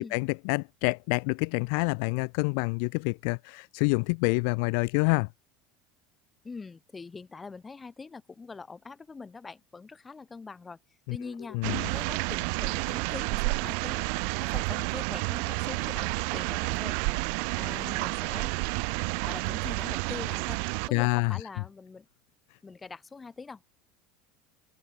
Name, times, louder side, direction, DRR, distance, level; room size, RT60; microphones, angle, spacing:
voice 1, 0.0-5.3 11.1-11.2 11.5-11.9 20.9-21.4, left 39 dB, 70° left, 0.3 m, -27 dB
voice 2, 6.4-10.8 11.1-14.1 14.4-17.3 17.6-18.7 19.2-20.6 20.8-22.0 22.6-23.7, left 4 dB, 15° left, 1.5 m, -43 dB
sound 1, 11.6-20.9, right 40 dB or more, 70° right, 0.6 m, -30 dB
supercardioid pair, 130°, 0 cm